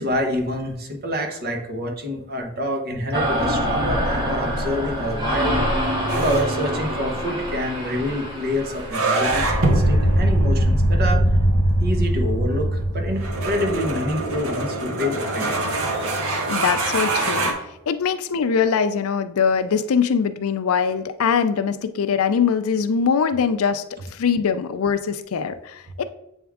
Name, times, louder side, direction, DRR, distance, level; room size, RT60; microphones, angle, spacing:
voice 1, 0.0-5.6 6.1-11.2 11.8-15.6, equal, 45° right, 3 dB, 1.1 m, -27 dB
sound 1, 3.1-8.9, equal, 20° right, 1.4 m, -25 dB
sound 2, 6.1-17.5, right 2 dB, 65° right, 1.1 m, -26 dB
sound 3, 9.2-14.5, equal, 10° left, 0.6 m, -21 dB
voice 2, 16.5-17.5 17.9-23.8 24.1-26.0, left 6 dB, 70° left, 11 dB, 0.4 m, -22 dB
7.9 x 3.6 x 3.5 m, 0.81 s
head